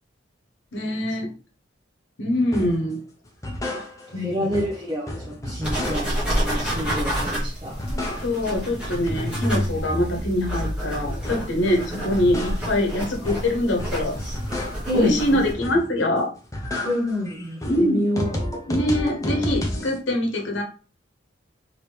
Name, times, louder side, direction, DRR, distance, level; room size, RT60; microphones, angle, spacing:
voice 1, 0.7-1.3 2.2-3.0 4.1-4.6 8.1-14.2 14.9-16.3 17.6-18.0 18.7-20.6, left 1 dB, 75° left, 2 dB, 0.9 m, -24 dB
sound 1, 2.5-2.8 3.3-4.2 4.5-6.3 6.7-7.3 7.6-8.6 8.9-11.6 12.0-15.0 15.4-16.0 16.4-20.0, left 1 dB, 15° left, 0.5 m, -31 dB
voice 2, 4.1-7.8 14.9-15.4 16.8-18.5, left 1 dB, 25° right, -4 dB, 0.8 m, -28 dB
sound 2, 5.6-15.5, equal, 5° right, 1.1 m, -30 dB
3.0 x 2.7 x 3.3 m, 0.37 s
head